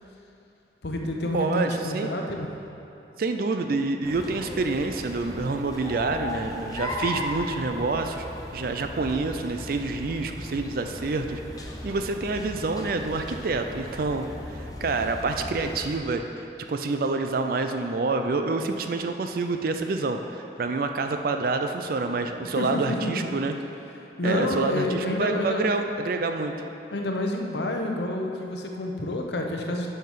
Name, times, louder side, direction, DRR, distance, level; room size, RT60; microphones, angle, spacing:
voice 1, 0.8-2.5 22.6-23.3 24.2-25.7 26.9-29.9, left 1 dB, 65° left, 2 dB, 0.8 m, -28 dB
voice 2, 1.3-2.1 3.2-8.3 8.5-11.4 11.8-16.3 16.7-23.6 24.2-26.6, right 3 dB, 55° right, 6 dB, 0.4 m, -27 dB
sound 1, 4.0-16.0, left 1 dB, 20° left, 0.6 m, -37 dB
7.4 x 5.7 x 5.7 m, 2.8 s
head